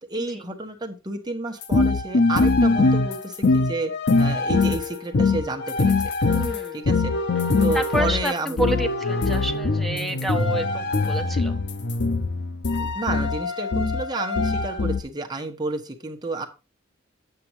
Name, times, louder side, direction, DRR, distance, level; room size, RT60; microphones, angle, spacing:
voice 1, 0.1-3.9 4.2-6.1 6.7-7.1 7.6-8.6 12.8-16.5, right 2 dB, 20° right, 3 dB, 1.2 m, -30 dB
sound 1, 1.6-15.0, left 3 dB, 60° left, 0.7 m, -22 dB
voice 2, 6.2-6.8 7.7-11.6, right 1 dB, ahead, 5 dB, 1.0 m, -29 dB
8.6 x 7.6 x 3.0 m, 0.28 s
head